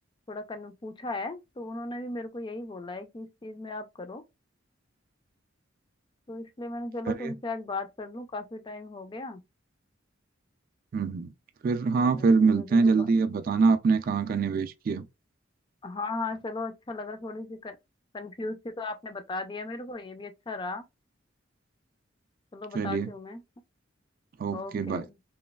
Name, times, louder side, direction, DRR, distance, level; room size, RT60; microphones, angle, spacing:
voice 1, 0.3-4.2 6.3-9.4 12.0-13.1 15.8-17.8 18.1-20.8 22.5-23.4 24.5-25.2, left 2 dB, 25° left, 0.4 m, -37 dB
voice 2, 10.9-11.3 11.6-15.0 22.7-23.1 24.4-25.0, right 4 dB, 45° right, 0.3 m, -24 dB
3.1 x 2.3 x 2.2 m
head